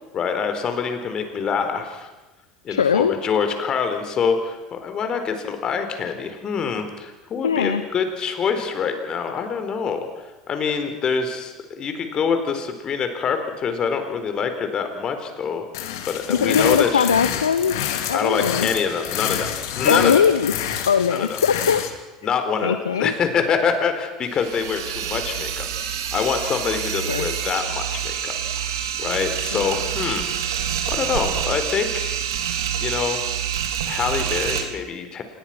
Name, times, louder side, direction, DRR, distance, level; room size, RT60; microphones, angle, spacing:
voice 1, 0.1-2.1 2.6-10.1 10.5-15.6 16.1-17.1 18.1-19.5 19.8-20.2 21.1-21.4 22.2-25.6 26.1-30.3 30.9-32.2 32.8-33.2 33.9-35.2, left 6 dB, 40° left, 7 dB, 4.3 m, -25 dB
voice 2, 2.7-3.1 7.4-7.8 16.3-17.8 18.1-18.7 19.8-20.5 20.9-21.8 22.6-23.1 27.1-27.3 29.5-29.6, left 7 dB, 90° left, 12 dB, 0.9 m, -20 dB
sound 1, 15.7-21.9, left 10 dB, 70° left, 2.7 m, -28 dB
sound 2, 24.3-34.6, right 9 dB, 75° right, 2.8 m, -27 dB
27.5 x 21.5 x 6.1 m, 1.1 s
hypercardioid pair, 80°, 2 cm